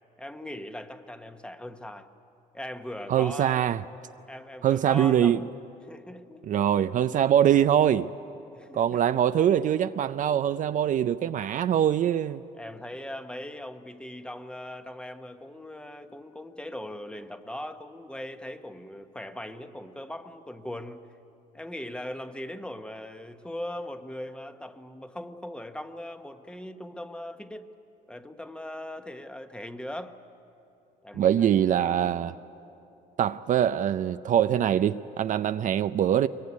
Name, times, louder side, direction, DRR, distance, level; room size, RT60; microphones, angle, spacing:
voice 1, 0.2-2.1 2.5-3.6 4.3-5.4 5.8-6.4 8.5-9.0 12.5-21.1 21.5-27.7 28.1-30.2 31.0-31.5 31.9-32.2, left 1 dB, 5° left, 1.1 m, -40 dB
voice 2, 3.1-3.8 4.6-5.4 6.4-8.1 8.7-12.4 31.1-32.3 33.2-36.3, right 10 dB, 50° right, 0.5 m, -23 dB
23.0 x 22.5 x 9.6 m
cardioid pair, 110°, 17 cm